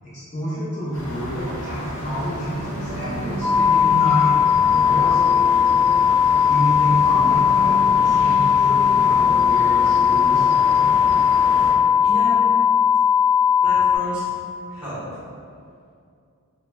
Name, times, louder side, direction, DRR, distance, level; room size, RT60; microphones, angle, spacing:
voice 1, 0.0-4.3 4.7-5.4 6.5-11.0, equal, 30° left, -10 dB, 0.4 m, -29 dB
sound 1, 0.9-11.7, equal, 65° left, 0.7 m, -33 dB
sound 2, 2.6-11.1, right 2 dB, 35° right, 0.7 m, -34 dB
sound 3, 3.4-14.0, left 8 dB, 85° right, 0.5 m, -17 dB
voice 2, 12.0-12.4 13.6-14.3 14.7-15.2, equal, 5° right, -12 dB, 0.7 m, -32 dB
2.1 x 2.0 x 3.4 m, 2.4 s
head